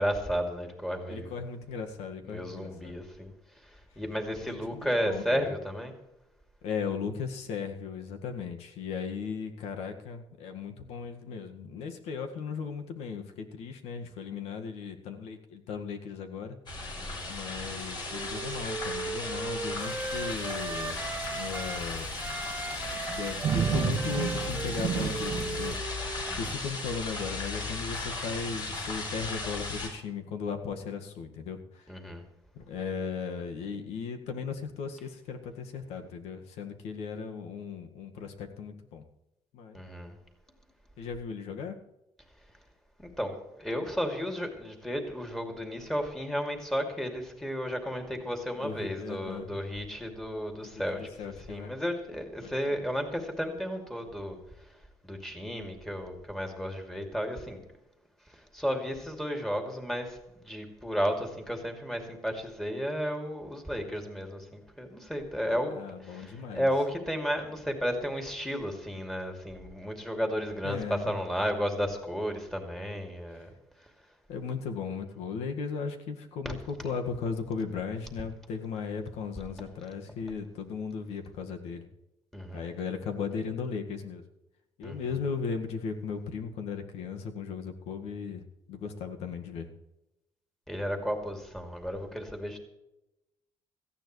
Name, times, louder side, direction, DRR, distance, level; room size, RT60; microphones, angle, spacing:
voice 1, 0.0-1.4 2.2-3.3 4.0-5.9 17.0-17.3 26.3-26.6 31.9-32.2 39.7-40.1 43.0-54.4 55.0-57.6 58.5-60.2 60.5-73.5 76.4-76.5 82.3-82.7 84.8-85.0 90.7-92.6, equal, 5° left, 3 dB, 2.7 m, -33 dB
voice 2, 1.1-2.9 4.4-5.4 6.6-16.6 17.3-21.0 21.3-22.1 23.1-26.0 26.3-31.9 32.6-39.0 39.5-39.8 41.0-41.8 48.6-49.6 50.6-51.7 52.4-52.8 65.4-66.7 70.6-71.1 74.3-81.9 82.5-84.2 84.8-88.4 88.7-89.7, left 5 dB, 80° left, 5 dB, 1.9 m, -37 dB
sound 1, 16.7-29.9, left 3 dB, 45° left, 5.4 m, -36 dB
Wind instrument woodwind instrument, 17.5-21.9 22.2-26.7, right 3 dB, 15° right, 1.1 m, -38 dB
Thunderstorm / Rain, 19.8-25.8, right 8 dB, 50° right, 0.8 m, -34 dB
18.0 x 14.5 x 3.3 m, 0.91 s
cardioid pair, 125°, 11 cm